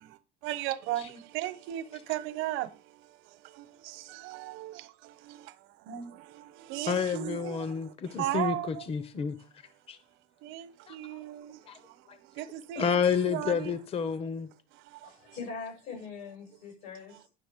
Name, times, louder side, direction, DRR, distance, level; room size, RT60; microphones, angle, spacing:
voice 1, 0.0-8.9 10.4-13.8 14.7-15.3, right 14 dB, 80° right, 0.9 m, -37 dB
voice 2, 6.9-9.4 9.9-10.0 10.9-11.0 11.7-11.8 12.1-12.2 12.8-14.5, left 7 dB, 30° left, 0.7 m, -29 dB
voice 3, 15.0-17.3, left 5 dB, 85° left, 6.5 m, -42 dB
10.5 x 6.3 x 5.1 m
cardioid pair, 150°, 20 cm